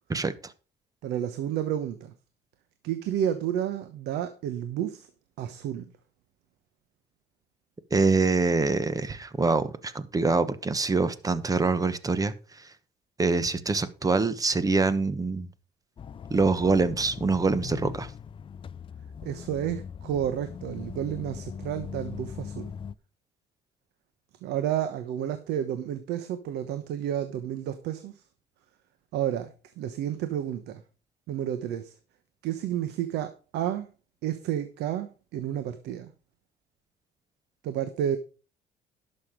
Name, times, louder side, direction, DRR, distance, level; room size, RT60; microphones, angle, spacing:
voice 1, 0.1-0.5 7.9-12.7 13.2-15.5 16.3-18.1, right 3 dB, 20° right, 1.1 m, -25 dB
voice 2, 1.0-2.1 2.8-5.1 5.4-5.9 19.2-22.7 24.4-28.2 29.1-30.8 31.3-31.9 32.4-33.9 34.2-36.1 37.6-38.2, right 10 dB, 80° right, 1.1 m, -31 dB
sound 1, 16.0-23.0, left 7 dB, 30° left, 0.5 m, -40 dB
11.5 x 6.6 x 5.1 m
cardioid pair, 110°, 17 cm